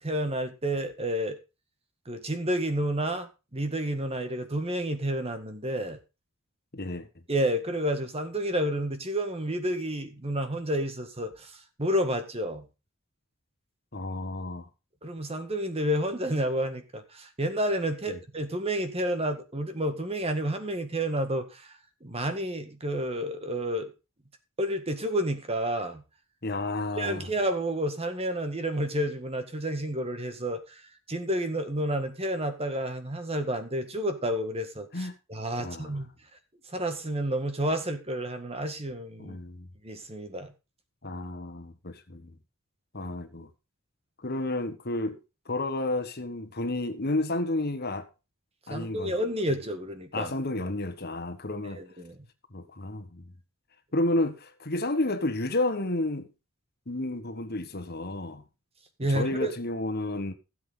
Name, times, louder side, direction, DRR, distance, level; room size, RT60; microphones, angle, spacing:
voice 1, 0.0-1.4 2.0-6.0 7.3-12.6 15.0-21.7 22.0-23.9 24.6-26.0 27.0-30.8 31.1-36.1 36.7-39.4 39.8-40.5 48.7-50.3 51.8-52.2 59.0-59.5, right 1 dB, 25° right, 1.7 m, -30 dB
voice 2, 6.7-7.1 13.9-14.7 18.1-18.2 26.4-27.3 34.9-35.1 35.6-36.0 39.2-39.7 41.0-42.4 42.9-43.5 44.2-45.2 45.4-48.1 48.7-49.1 50.1-51.8 52.5-53.3 53.9-56.3 56.9-58.4 59.1-60.3, left 2 dB, 45° left, 1.6 m, -31 dB
16.5 x 7.8 x 3.9 m
head